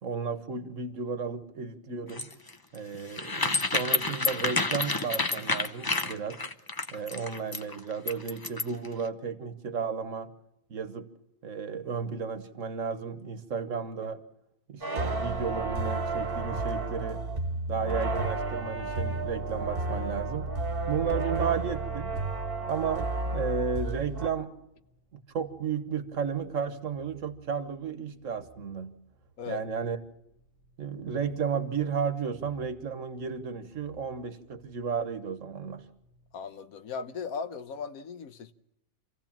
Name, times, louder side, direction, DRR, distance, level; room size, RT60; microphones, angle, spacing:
voice 1, 0.0-2.3 2.7-6.4 6.9-10.3 10.7-11.1 11.4-14.2 14.7-17.3 17.7-20.5 20.9-22.2 22.6-24.5 25.1-28.9 29.5-30.0 30.8-35.8, right 6 dB, 65° right, 1.6 m, -33 dB
sound 1, 2.1-8.9, left 3 dB, 20° left, 0.6 m, -29 dB
sound 2, 14.8-24.3, right 2 dB, 40° right, 1.5 m, -32 dB
sound 3, 21.0-36.3, right 6 dB, 65° left, 5.6 m, -60 dB
voice 2, 36.3-38.5, left 5 dB, 90° left, 1.4 m, -37 dB
27.5 x 16.0 x 7.4 m
omnidirectional pair, 1.4 m